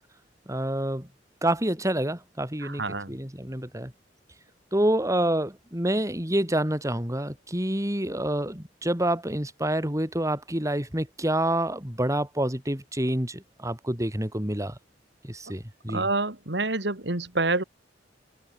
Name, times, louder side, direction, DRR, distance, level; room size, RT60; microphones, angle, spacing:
voice 1, 0.5-1.1 1.4-2.8 3.1-3.9 4.7-14.7 15.2-16.1, right 1 dB, 20° right, 4.6 m, -27 dB
voice 2, 2.6-3.2 15.9-17.6, right 3 dB, 70° right, 3.0 m, -27 dB
head